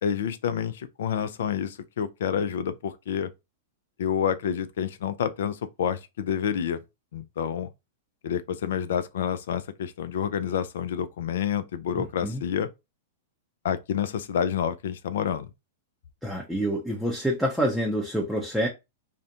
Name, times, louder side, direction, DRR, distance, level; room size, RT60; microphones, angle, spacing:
voice 1, 0.0-3.3 4.0-6.8 7.1-7.7 8.2-12.7 13.6-15.5, left 8 dB, 70° left, 0.4 m, -28 dB
voice 2, 12.0-12.4 16.2-18.7, equal, ahead, 0.5 m, -27 dB
2.5 x 2.1 x 2.7 m
hypercardioid pair, 115°, 0 cm